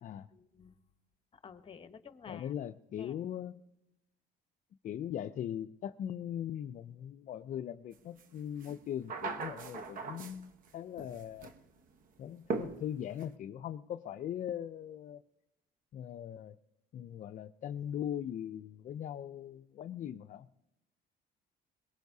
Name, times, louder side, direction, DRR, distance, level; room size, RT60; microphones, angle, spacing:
voice 1, 0.3-0.8 1.4-2.5 2.9-3.1, left 6 dB, 35° left, 10 dB, 1.0 m, -51 dB
voice 2, 2.3-3.6 4.8-11.5 12.2-15.2 15.9-16.5 16.9-20.5, left 10 dB, 50° left, 10 dB, 0.4 m, -40 dB
sound 1, 8.2-8.3 8.6-10.7 11.0-11.6 12.5-13.2, right 4 dB, 55° right, 1.1 m, -39 dB
22.0 x 19.5 x 2.7 m, 0.88 s
cardioid pair, 110°, 17 cm